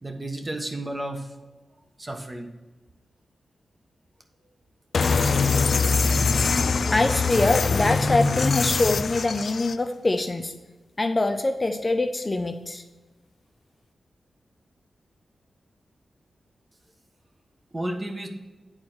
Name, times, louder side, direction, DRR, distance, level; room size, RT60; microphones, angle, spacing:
voice 1, 0.0-1.3 2.0-2.5 17.7-18.3, right 1 dB, 25° right, 4 dB, 1.2 m, -32 dB
sound 1, 4.9-9.7, left 4 dB, 65° left, 0.4 m, -23 dB
voice 2, 6.9-10.5 11.0-12.8, left 2 dB, 30° left, 6 dB, 0.7 m, -24 dB
8.9 x 4.3 x 6.3 m, 1.2 s
cardioid pair, 70°, 0 cm